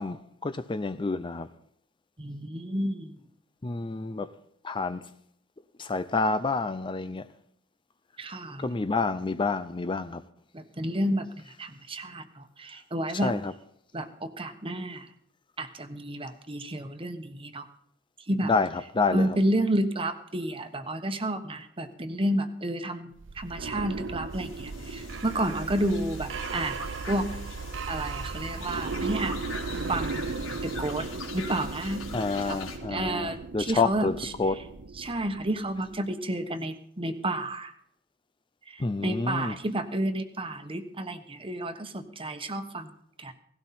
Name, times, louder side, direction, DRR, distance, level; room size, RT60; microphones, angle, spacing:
voice 1, 0.0-1.5 3.6-4.3 4.6-5.0 5.8-7.3 8.6-10.2 13.2-13.5 18.4-19.4 32.1-34.6 38.8-39.6, left 3 dB, 25° left, 0.5 m, -28 dB
voice 2, 2.2-3.2 8.2-8.7 10.5-11.3 11.6-13.3 13.9-15.1 15.6-17.7 18.3-18.5 19.1-26.8 27.1-27.3 27.9-29.4 29.9-30.3 30.6-31.1 31.3-32.0 32.5-32.6 32.9-34.1 35.0-37.7 38.7-42.9 43.2-43.3, right 1 dB, 30° right, 1.2 m, -30 dB
sound 1, 23.2-36.0, right 4 dB, 65° right, 0.7 m, -36 dB
sound 2, 24.3-32.8, left 4 dB, 85° left, 3.2 m, -43 dB
18.0 x 16.5 x 4.3 m
head